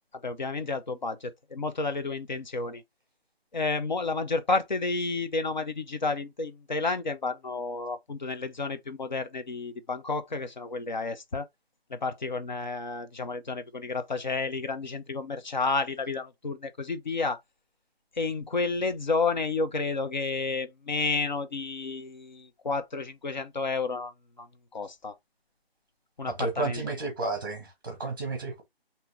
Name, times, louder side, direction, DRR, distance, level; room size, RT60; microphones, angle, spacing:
voice 1, 0.2-2.8 3.5-11.5 11.9-17.4 18.2-24.1 24.4-24.5 24.7-25.2 26.2-26.8, left 3 dB, 45° left, 0.8 m, -31 dB
voice 2, 26.3-28.6, right 3 dB, 20° right, 1.1 m, -32 dB
5.7 x 2.9 x 2.8 m
figure-of-eight pair, 165°, 31 cm